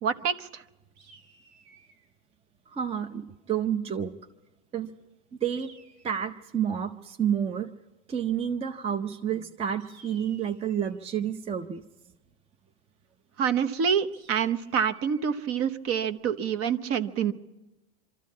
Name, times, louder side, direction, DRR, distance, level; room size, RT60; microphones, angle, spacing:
voice 1, 0.0-0.6 13.4-17.3, right 7 dB, 40° right, 12 dB, 1.0 m, -27 dB
sound 1, 0.9-2.1 5.6-6.6 9.8-11.1 14.1-15.3, right 4 dB, 80° right, 4.0 m, -56 dB
voice 2, 2.7-4.1 4.7-4.9 5.4-5.7 6.0-7.7 8.1-11.8, right 8 dB, 20° right, 8 dB, 0.6 m, -29 dB
24.0 x 13.5 x 8.4 m, 1.1 s
supercardioid pair, 135°, 34 cm